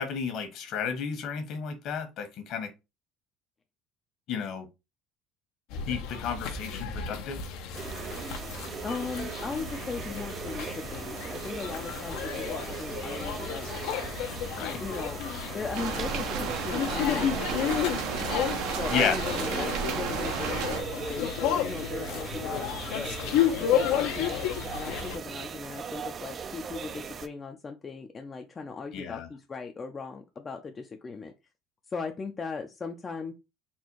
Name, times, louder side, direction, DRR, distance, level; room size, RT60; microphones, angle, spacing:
voice 1, 0.0-2.7 4.3-4.7 5.9-7.4 14.6-14.8 18.9-19.2 28.9-29.3, left 6 dB, 55° left, 1.3 m, -32 dB
sound 1, 5.7-25.2, left 9 dB, 80° left, 0.8 m, -32 dB
sound 2, 7.7-27.3, right 6 dB, 35° right, 0.4 m, -39 dB
voice 2, 8.8-13.7 14.8-15.2 15.5-17.7 18.6-23.2 23.6-31.3 31.9-33.3, left 4 dB, 25° left, 0.5 m, -38 dB
sound 3, 15.7-20.8, right 6 dB, 75° right, 0.9 m, -32 dB
4.3 x 2.3 x 4.5 m
cardioid pair, 125°, 0 cm